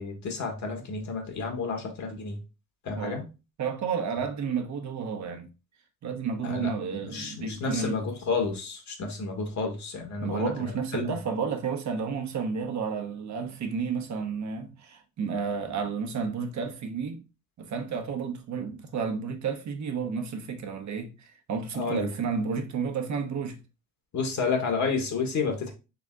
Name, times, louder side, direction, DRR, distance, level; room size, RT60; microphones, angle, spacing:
voice 1, 0.0-2.4 2.8-3.2 6.4-6.7 7.0-11.1 21.7-22.1 24.1-25.7, left 4 dB, 60° left, 1.6 m, -31 dB
voice 2, 3.6-5.5 6.0-8.0 10.2-17.2 17.6-23.6, right 6 dB, 60° right, 1.1 m, -31 dB
4.0 x 3.5 x 3.6 m
cardioid pair, 85°, 32 cm